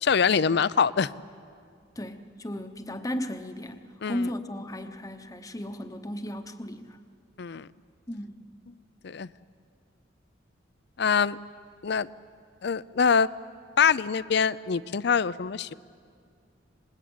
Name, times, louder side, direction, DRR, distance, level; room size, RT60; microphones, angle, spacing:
voice 1, 0.0-1.1 4.0-4.2 7.4-7.7 9.0-9.3 11.0-11.4 11.8-12.1 12.6-13.3 13.8-15.7, left 6 dB, 60° left, 18 dB, 0.5 m, -24 dB
voice 2, 2.0-7.0 8.1-8.4, left 1 dB, 20° left, 7 dB, 1.0 m, -35 dB
26.5 x 20.5 x 8.7 m, 2.3 s
head